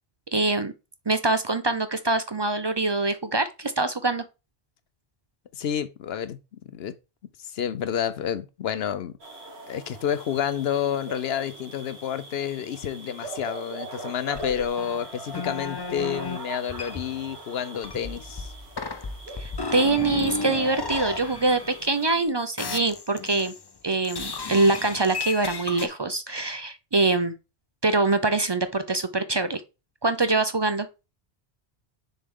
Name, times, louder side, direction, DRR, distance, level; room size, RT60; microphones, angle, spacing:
voice 1, 0.3-0.7 1.1-4.2 19.4-23.5 23.8-27.3 27.8-29.6 30.0-30.9, right 3 dB, 35° right, 0.4 m, -24 dB
voice 2, 5.5-6.4 6.7-7.0 7.4-9.1 9.7-18.5, left 9 dB, 70° left, 0.9 m, -29 dB
sound 1, 9.2-22.2, right 3 dB, 70° right, 2.2 m, -42 dB
sound 2, 14.3-16.4 16.7-17.4 17.7-22.2 22.6-23.7 24.0-25.9, left 4 dB, 30° left, 0.5 m, -34 dB
6.7 x 4.5 x 3.6 m
omnidirectional pair, 1.1 m